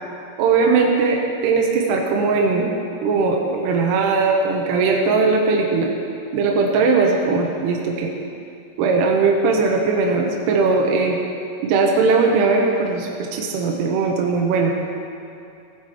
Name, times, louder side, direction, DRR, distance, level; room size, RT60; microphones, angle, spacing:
voice 1, 0.4-2.7 3.0-5.9 6.3-8.1 8.8-11.2 11.6-14.7, right 4 dB, 75° right, 0 dB, 3.0 m, -19 dB
17.0 x 8.0 x 4.9 m, 2.5 s
omnidirectional pair, 5.0 m